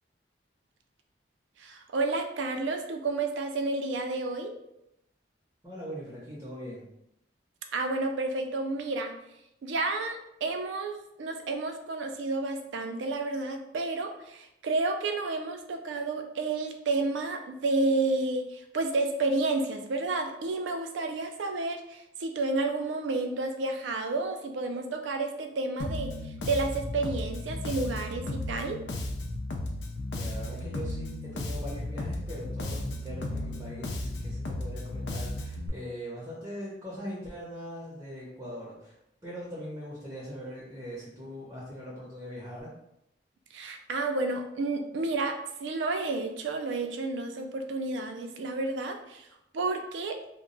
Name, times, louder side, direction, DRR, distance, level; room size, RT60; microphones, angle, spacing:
voice 1, 1.6-4.5 7.7-9.1 9.6-26.1 26.4-28.8 43.5-49.3 49.5-50.2, right 3 dB, 85° right, 5 dB, 0.4 m, -31 dB
voice 2, 5.6-6.9 30.2-38.9 39.2-42.7, equal, 15° right, -6 dB, 0.6 m, -41 dB
Bass guitar, 25.8-35.7, left 1 dB, 65° left, 0.4 m, -35 dB
2.2 x 2.0 x 3.7 m, 0.82 s
head